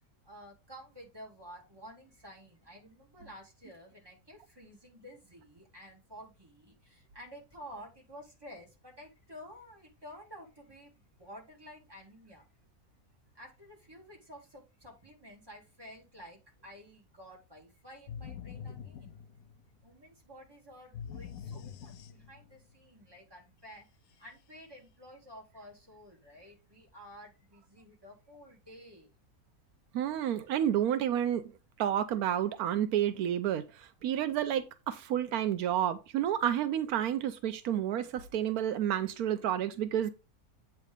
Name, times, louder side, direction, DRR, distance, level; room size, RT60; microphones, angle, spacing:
voice 1, 0.2-12.5 13.3-19.2 19.8-23.9 24.2-29.1, equal, 15° right, 2.2 m, -51 dB
sound 1, 18.1-19.8 20.9-22.6, left 7 dB, 75° left, 1.1 m, -44 dB
voice 2, 29.9-31.4 31.8-40.1, right 10 dB, 85° right, 1.1 m, -30 dB
8.2 x 3.3 x 5.0 m
omnidirectional pair, 1.5 m